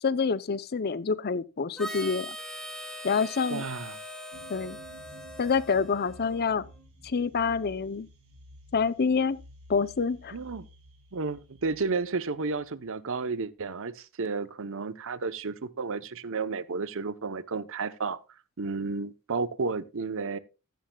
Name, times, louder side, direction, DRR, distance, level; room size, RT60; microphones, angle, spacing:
voice 1, 0.0-2.4 3.0-3.7 4.5-4.8 5.4-6.6 7.0-8.1 8.7-9.4 9.7-10.4, left 5 dB, 45° left, 0.6 m, -27 dB
Harmonica, 1.8-6.5, equal, 5° left, 2.1 m, -41 dB
voice 2, 3.5-4.0 10.3-10.7 11.1-18.2 18.6-20.4, right 4 dB, 65° right, 0.8 m, -32 dB
sound 1, 4.3-12.9, equal, 80° right, 6.6 m, -52 dB
15.0 x 11.5 x 2.3 m
head